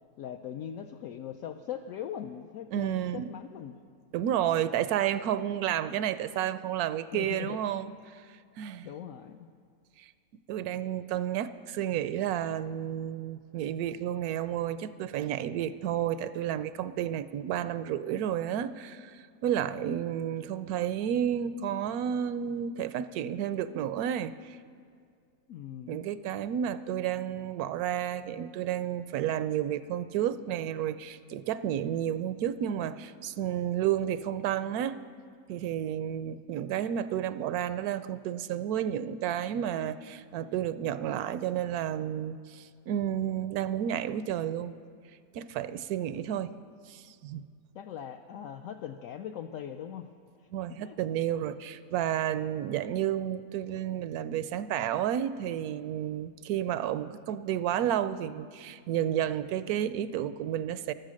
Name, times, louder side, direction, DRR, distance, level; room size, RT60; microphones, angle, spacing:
voice 1, 0.2-3.8 7.1-7.6 8.8-9.5 25.5-26.0 47.7-50.1 50.7-51.0, left 9 dB, 70° left, 5 dB, 0.9 m, -40 dB
voice 2, 2.7-3.3 4.1-7.9 8.6-8.9 10.0-10.1 10.5-24.6 25.9-35.0 35.5-44.7 45.3-46.5 46.9-47.4 50.5-60.9, right 10 dB, 80° right, 13 dB, 1.1 m, -31 dB
15.5 x 12.0 x 6.3 m, 2.1 s
omnidirectional pair, 1.6 m